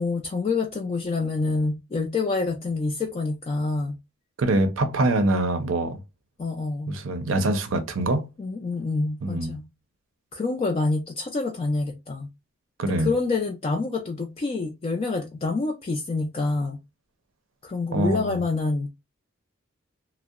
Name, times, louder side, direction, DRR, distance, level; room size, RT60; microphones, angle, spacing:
voice 1, 0.0-4.0 6.4-7.0 8.4-9.6 10.3-12.3 13.0-16.8 17.6-18.9, left 3 dB, 30° left, 0.3 m, -27 dB
voice 2, 4.4-6.0 6.9-8.3 9.2-9.6 12.8-13.1 17.9-18.4, right 2 dB, 65° right, 0.5 m, -24 dB
2.7 x 2.0 x 2.3 m
head